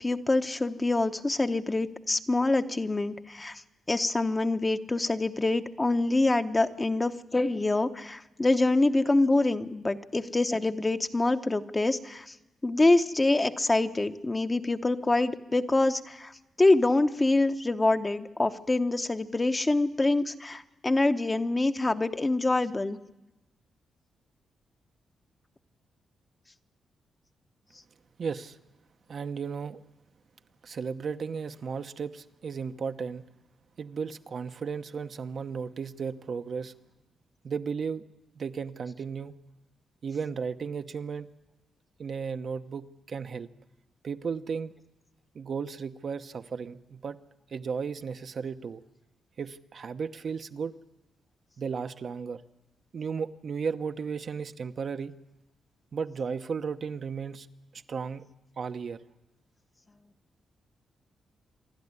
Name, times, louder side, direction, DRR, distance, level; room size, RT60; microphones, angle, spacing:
voice 1, 0.0-3.6 3.9-12.3 12.6-16.3 16.6-23.0, left 2 dB, 20° left, 9 dB, 0.9 m, -25 dB
voice 2, 28.2-28.6 29.1-29.8 30.6-33.2 33.8-36.7 37.4-38.0 38.3-39.3 40.0-41.3 42.0-43.5 44.0-44.7 45.3-47.2 47.5-48.8 49.4-50.7 51.6-52.4 52.9-55.1 55.9-57.5 57.7-58.2 58.6-59.0, right 6 dB, 55° right, 8 dB, 0.9 m, -34 dB
27.0 x 12.0 x 9.7 m, 1.0 s
cardioid pair, 90°, 0 cm